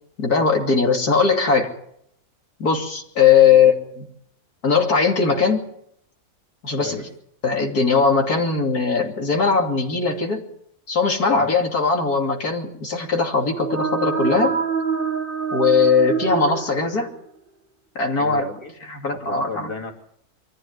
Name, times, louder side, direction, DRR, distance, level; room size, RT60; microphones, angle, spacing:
voice 1, 0.2-1.7 2.6-4.1 4.6-5.7 6.6-7.1 7.4-10.4 10.9-14.6 15.5-17.1 17.9-18.4 18.9-19.7, left 5 dB, 65° left, 2 dB, 3.3 m, -19 dB
voice 2, 11.3-11.6 18.2-18.7 19.1-20.0, left 4 dB, 15° left, 1 dB, 3.2 m, -34 dB
sound 1, 13.4-17.2, right 6 dB, 35° right, 1.5 m, -26 dB
24.5 x 14.0 x 9.5 m, 0.71 s
omnidirectional pair, 1.7 m